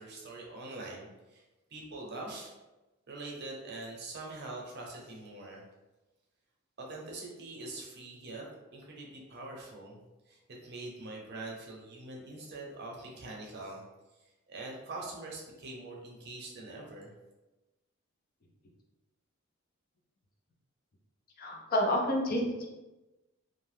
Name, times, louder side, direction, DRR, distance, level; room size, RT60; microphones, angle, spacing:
voice 1, 0.0-1.4 1.7-2.5 3.1-5.6 6.8-13.8 14.5-17.1, right 2 dB, 50° right, -1 dB, 0.7 m, -44 dB
voice 2, 21.4-22.7, left 1 dB, 45° left, 0 dB, 0.5 m, -29 dB
2.7 x 2.1 x 3.2 m, 1.1 s
head